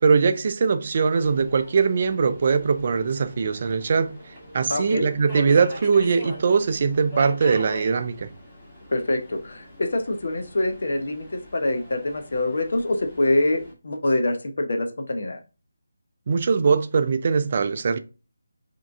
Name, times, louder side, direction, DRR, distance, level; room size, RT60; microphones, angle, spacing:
voice 1, 0.0-4.2 4.5-8.3 16.3-18.0, right 5 dB, 40° right, 0.4 m, -21 dB
Subway metro underground, 1.1-13.7, left 1 dB, 15° left, 2.2 m, -42 dB
voice 2, 4.7-5.1 8.9-15.4, left 2 dB, 55° left, 0.8 m, -25 dB
4.8 x 3.1 x 3.5 m
figure-of-eight pair, 155°, 0 cm